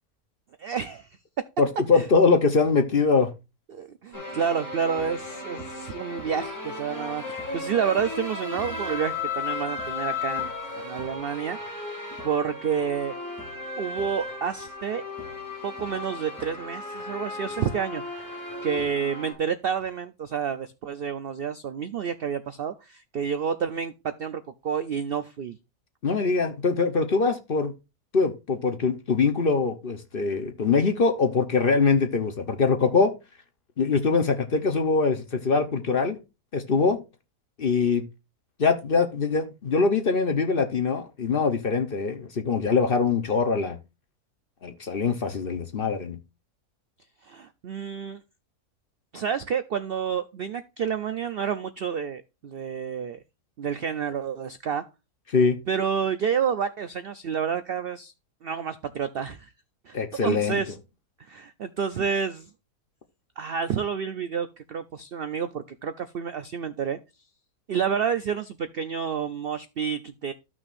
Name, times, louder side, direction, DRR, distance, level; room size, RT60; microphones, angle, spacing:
voice 1, 0.6-1.1 1.9-2.1 3.7-11.9 12.2-13.2 13.8-15.0 15.6-18.2 18.6-25.6 47.2-48.2 49.1-53.2 53.6-54.8 55.7-58.1 58.4-59.5 59.9-60.0 60.2-60.8 61.2-62.5 63.4-67.0 67.7-70.3, right 7 dB, 65° right, 0.5 m, -29 dB
voice 2, 1.6-3.3 26.0-27.7 28.1-33.1 33.8-36.2 36.5-37.0 37.6-38.0 38.6-43.8 44.6-46.2 55.3-55.6 59.9-60.6, left 4 dB, 45° left, 0.9 m, -23 dB
sound 1, 4.1-19.3, left 3 dB, 10° left, 2.8 m, -35 dB
14.0 x 6.1 x 2.5 m
omnidirectional pair, 1.6 m